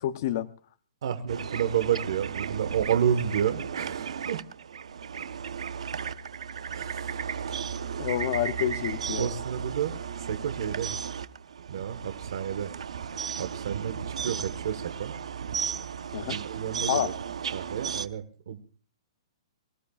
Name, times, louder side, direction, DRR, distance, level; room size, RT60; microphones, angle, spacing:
voice 1, 0.0-0.5 8.0-9.3 16.1-16.4 16.9-17.1, left 11 dB, 30° left, 11 dB, 0.7 m, -28 dB
voice 2, 1.0-4.4 6.7-7.6 9.2-11.0 11.7-12.7 13.4-15.1 16.3-17.1 17.5-18.6, right 8 dB, 50° right, 9 dB, 1.4 m, -30 dB
sound 1, 1.3-18.1, right 7 dB, 85° right, 1.0 m, -35 dB
24.5 x 16.0 x 2.4 m, 0.40 s
hypercardioid pair, 180°, 3 cm